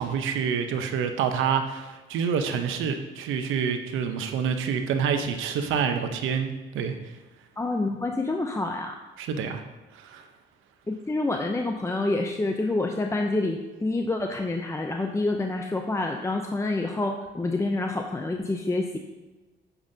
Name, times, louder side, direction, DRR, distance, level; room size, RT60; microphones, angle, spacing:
voice 1, 0.0-6.9 9.2-9.6 9.9-10.2, right 7 dB, 85° right, 6 dB, 0.8 m, -27 dB
voice 2, 7.6-8.9 10.9-19.0, left 2 dB, 15° left, 3 dB, 0.6 m, -27 dB
8.7 x 7.2 x 2.8 m, 1.2 s
cardioid pair, 90°, 20 cm